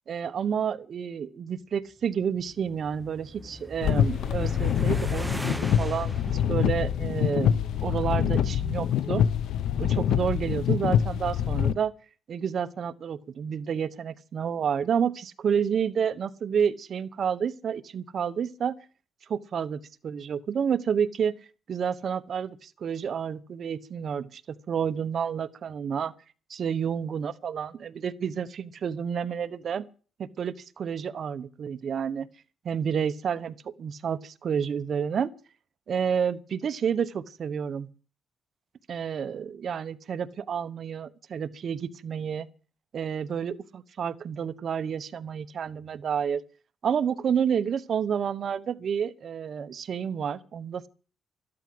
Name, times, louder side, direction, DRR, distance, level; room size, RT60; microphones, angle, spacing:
voice 1, 0.1-9.2 9.8-11.9 12.3-18.8 19.3-21.3 21.7-24.4 24.7-26.1 26.5-29.9 30.2-32.3 32.6-35.3 35.9-37.9 38.9-42.5 42.9-46.4 46.8-50.9, right 7 dB, 50° right, 1.1 m, -30 dB
sound 1, 2.2-7.7, equal, ahead, 0.9 m, -39 dB
sound 2, 3.8-11.7, left 9 dB, 75° left, 0.7 m, -25 dB
13.0 x 12.5 x 7.8 m
cardioid pair, 130°, 0 cm